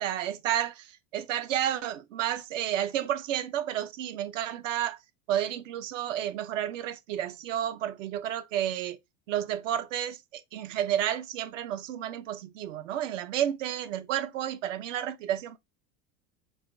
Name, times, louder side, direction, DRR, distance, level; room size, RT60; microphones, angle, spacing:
voice 1, 0.0-5.0 5.3-9.0 9.3-15.6, right 11 dB, 80° right, 0.6 m, -31 dB
4.1 x 2.4 x 3.5 m
hypercardioid pair, 100°, 38 cm